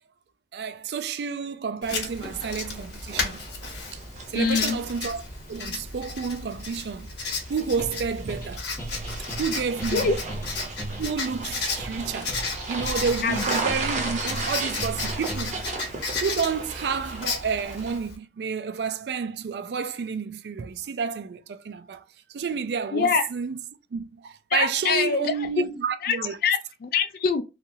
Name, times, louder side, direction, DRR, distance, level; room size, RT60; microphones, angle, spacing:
voice 1, 0.5-3.4 4.3-5.2 5.5-7.1 7.5-8.6 9.4-10.2 11.0-12.4 12.7-15.7 16.2-22.0 22.3-23.6 23.9-26.4, right 6 dB, 70° right, 0.4 m, -30 dB
Writing, 1.8-18.2, left 4 dB, 85° left, 1.0 m, -34 dB
sound 1, 1.9-18.0, right 3 dB, 40° right, 0.7 m, -36 dB
voice 2, 4.4-4.8 9.9-10.2 13.2-13.4 22.9-23.3 24.5-25.3 26.0-26.2 26.4-27.4, left 5 dB, 55° left, 0.3 m, -24 dB
sound 2, 7.8-15.7, right 1 dB, 20° left, 0.9 m, -36 dB
2.9 x 2.4 x 2.7 m
head